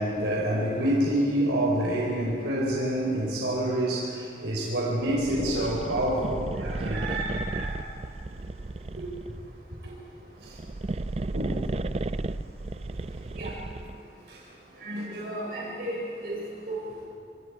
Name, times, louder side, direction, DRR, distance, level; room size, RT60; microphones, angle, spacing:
voice 1, 0.0-7.8 9.0-9.1 9.7-9.9 10.4-10.6 11.3-11.9 14.3-14.4 15.0-15.1, right 1 dB, 90° right, -3 dB, 4.3 m, -28 dB
sound 1, 5.0-9.5 10.4-14.1, right 2 dB, 35° right, 0.4 m, -34 dB
voice 2, 14.8-16.4 16.7-16.8, right 1 dB, 55° right, -4 dB, 7.4 m, -34 dB
25.5 x 24.5 x 4.9 m, 2.3 s
head